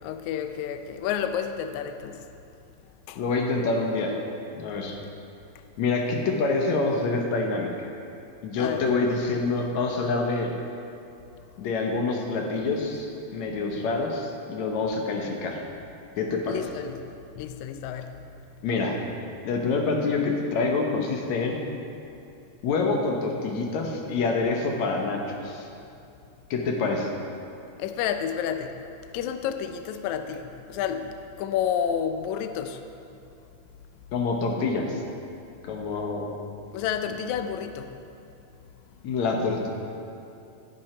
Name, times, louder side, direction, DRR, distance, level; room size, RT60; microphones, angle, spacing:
voice 1, 0.0-2.3 3.1-3.2 8.6-8.9 16.5-17.0 17.3-18.2 27.8-28.8 29.1-32.8 36.7-37.9, left 8 dB, 90° left, 8 dB, 1.6 m, -30 dB
voice 2, 3.2-4.2 4.6-5.0 5.8-7.9 8.4-10.5 11.6-15.6 16.2-16.6 18.6-19.0 19.4-21.6 22.6-25.7 26.5-27.1 34.1-35.0 35.6-36.3 39.0-39.7, left 3 dB, 65° left, 1 dB, 2.1 m, -26 dB
15.5 x 8.0 x 4.4 m, 2.7 s
omnidirectional pair, 4.1 m